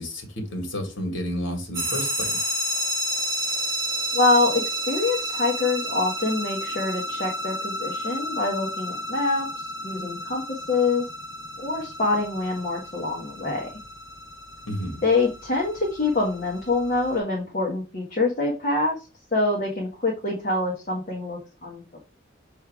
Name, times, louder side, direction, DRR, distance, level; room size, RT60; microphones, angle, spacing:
voice 1, 0.0-2.5 14.7-15.0, equal, 75° left, 1.9 m, -31 dB
sound 1, 1.7-17.2, equal, 20° right, 1.5 m, -31 dB
voice 2, 4.1-11.0 11.6-13.7 15.0-19.0 19.3-22.0, left 3 dB, 40° left, 1.4 m, -25 dB
6.3 x 3.4 x 4.7 m
head